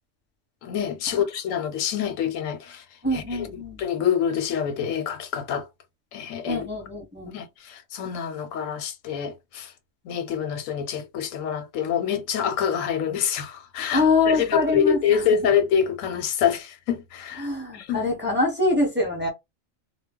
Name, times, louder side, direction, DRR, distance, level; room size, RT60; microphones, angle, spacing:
voice 1, 0.6-2.8 3.1-3.5 3.8-5.7 6.1-6.7 7.2-9.7 10.0-17.5 17.7-18.0, left 8 dB, 90° left, 1.0 m, -26 dB
voice 2, 3.0-3.8 6.5-7.3 13.9-15.5 17.4-19.3, left 3 dB, 10° right, 0.7 m, -24 dB
2.2 x 2.0 x 3.5 m
omnidirectional pair, 1.3 m